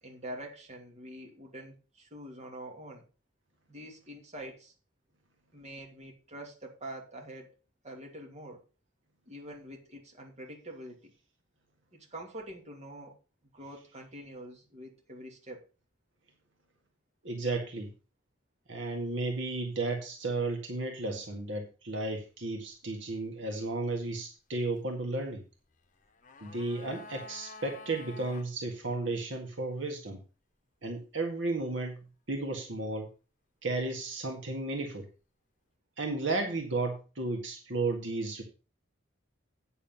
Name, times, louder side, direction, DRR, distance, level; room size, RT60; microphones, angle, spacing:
voice 1, 0.0-3.1 3.7-4.7 5.5-7.5 7.8-8.6 9.3-11.1 11.9-13.2 13.5-15.7, right 1 dB, 35° right, 1 dB, 2.7 m, -45 dB
voice 2, 17.2-17.9 18.7-25.4 26.4-30.2 30.8-32.0 32.3-33.1 33.6-35.1 36.0-38.4, right 2 dB, 70° right, 2 dB, 1.9 m, -33 dB
sound 1, 25.9-28.5 28.8-28.9, left 3 dB, 40° left, 1.0 m, -49 dB
9.1 x 6.9 x 5.4 m, 0.33 s
head